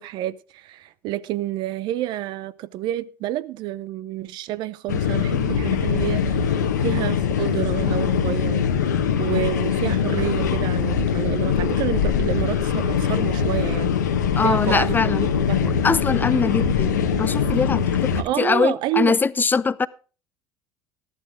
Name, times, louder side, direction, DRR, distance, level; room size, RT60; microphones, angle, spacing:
voice 1, 0.0-8.6 9.2-13.9 14.4-15.8 18.2-19.2, right 13 dB, 55° right, 0.7 m, -29 dB
sound 1, 4.9-18.2, left 7 dB, 80° left, 1.2 m, -22 dB
voice 2, 14.4-15.3 15.8-19.9, left 5 dB, 20° left, 0.5 m, -22 dB
14.0 x 11.5 x 3.7 m
figure-of-eight pair, 65°, 9 cm